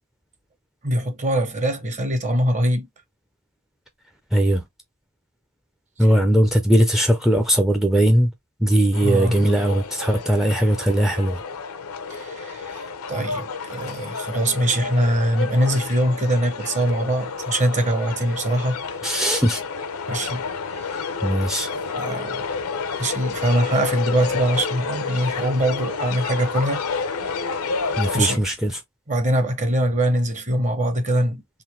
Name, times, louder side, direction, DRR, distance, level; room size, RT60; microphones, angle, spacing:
voice 1, 0.8-2.9 9.0-9.4 12.1-18.8 20.1-20.4 20.8-21.1 21.9-22.4 23.0-26.8 28.1-28.4 29.1-31.4, right 1 dB, 35° right, 0.9 m, -23 dB
voice 2, 4.3-4.6 6.0-8.3 8.6-11.4 19.0-19.6 21.2-21.7 28.0-28.8, right 1 dB, ahead, 0.5 m, -19 dB
sound 1, 8.9-28.4, left 5 dB, 75° left, 0.7 m, -30 dB
3.8 x 2.6 x 3.0 m
head